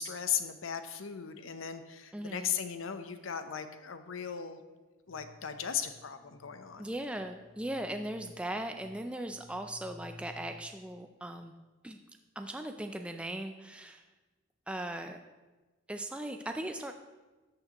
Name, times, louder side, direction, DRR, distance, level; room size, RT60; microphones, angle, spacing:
voice 1, 0.0-4.6 5.1-6.8, left 8 dB, 85° left, 9 dB, 0.7 m, -37 dB
voice 2, 2.1-2.5 6.8-11.6 11.8-12.0 12.4-14.0 14.7-15.2 15.9-16.9, right 1 dB, 5° right, 5 dB, 0.3 m, -38 dB
sound 1, 5.1-11.0, left 1 dB, 40° right, 2.8 m, -55 dB
13.0 x 6.6 x 2.9 m, 1.2 s
head